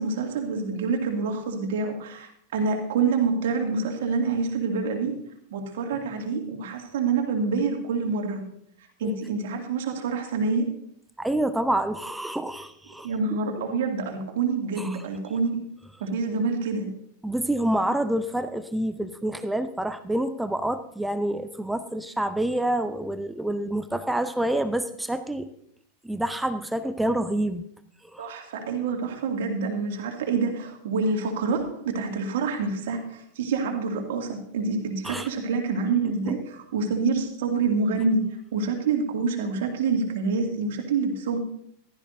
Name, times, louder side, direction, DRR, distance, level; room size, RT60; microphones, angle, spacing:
voice 1, 0.0-5.1 5.5-8.4 9.0-10.7 13.0-15.7 16.0-16.9 28.2-38.2 38.5-41.4, right 4 dB, 55° right, 3 dB, 2.4 m, -27 dB
voice 2, 11.2-13.1 14.8-15.0 17.2-25.5 26.0-27.7 28.1-28.3 35.0-35.3 36.0-36.4, right 1 dB, 5° right, 11 dB, 0.6 m, -27 dB
15.5 x 13.0 x 2.7 m, 0.68 s
figure-of-eight pair, 90°, 0 cm